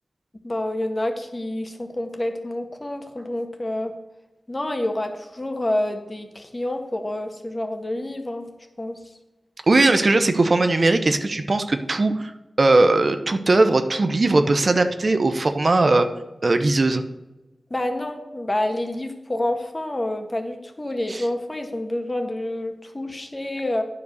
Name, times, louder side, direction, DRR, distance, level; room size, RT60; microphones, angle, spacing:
voice 1, 0.4-3.9 4.5-8.5 8.8-9.0 17.7-23.8, left 1 dB, 30° left, 4 dB, 1.6 m, -28 dB
voice 2, 9.7-12.3 12.6-16.1 16.4-17.0 21.1-21.2, right 2 dB, 55° right, 9 dB, 0.8 m, -19 dB
9.6 x 5.2 x 6.6 m, 1.1 s
cardioid pair, 45°, 0 cm